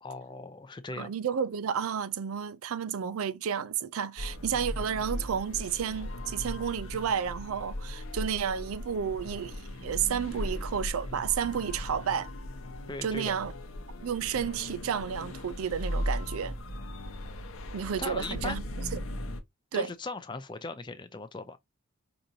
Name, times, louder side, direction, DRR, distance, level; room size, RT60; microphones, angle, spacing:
voice 1, 0.0-1.1 12.9-13.4 18.0-18.6 19.7-21.6, left 3 dB, 20° left, 0.5 m, -38 dB
voice 2, 1.0-12.3 13.0-13.5 14.0-16.6 17.7-19.1 19.7-19.9, right 7 dB, 85° right, 0.4 m, -31 dB
sound 1, 4.2-19.4, left 1 dB, 75° left, 0.8 m, -38 dB
5.0 x 2.6 x 2.7 m
head